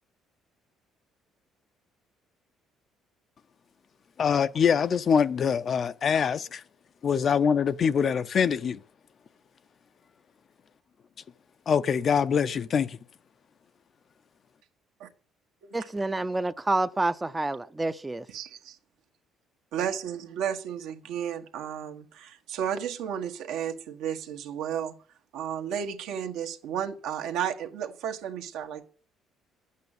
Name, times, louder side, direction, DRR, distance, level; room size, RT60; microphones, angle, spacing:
voice 1, 4.2-6.6 7.0-8.8 11.7-13.0, left 7 dB, 40° left, 0.7 m, -24 dB
voice 2, 15.7-18.2, right 2 dB, 15° right, 0.6 m, -28 dB
voice 3, 18.3-18.8 19.7-25.0 25.3-28.9, right 9 dB, 80° right, 1.7 m, -33 dB
11.0 x 8.4 x 9.0 m
cardioid pair, 115°, 0 cm